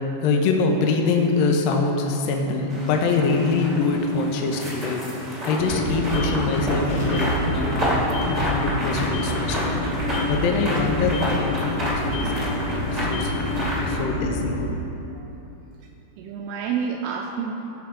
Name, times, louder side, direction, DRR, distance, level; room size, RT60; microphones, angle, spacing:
voice 1, 0.2-5.0 5.4-9.7 10.3-14.6, left 4 dB, 80° left, 2 dB, 2.1 m, -24 dB
sound 1, 2.7-14.0, equal, 25° right, 0.8 m, -30 dB
sound 2, 5.6-14.7, left 1 dB, 45° left, 1.7 m, -26 dB
voice 2, 16.2-17.6, right 6 dB, 85° right, 2 dB, 2.5 m, -30 dB
16.0 x 6.3 x 5.0 m, 2.9 s
omnidirectional pair, 5.2 m